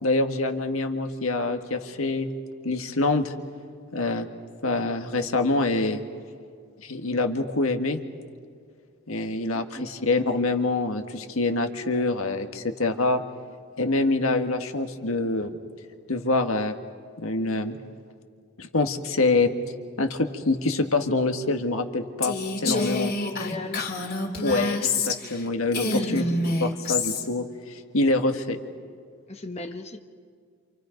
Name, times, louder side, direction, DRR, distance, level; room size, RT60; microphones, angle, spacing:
voice 1, 0.0-2.3 2.6-3.3 3.9-4.3 4.6-6.0 6.8-8.0 9.1-13.2 13.8-15.5 16.1-16.7 17.2-17.8 18.6-19.6 20.0-22.3 22.6-23.1 24.4-26.2 26.6-28.6, left 2 dB, 75° left, 6 dB, 1.7 m, -25 dB
voice 2, 9.5-9.9 22.6-23.8 25.8-26.3 29.3-30.1, left 2 dB, 30° left, 5 dB, 1.0 m, -34 dB
Female speech woman speaking, 22.2-25.4 25.7-27.3, left 3 dB, 45° left, 3.2 m, -27 dB
28.5 x 28.0 x 5.3 m, 2.1 s
head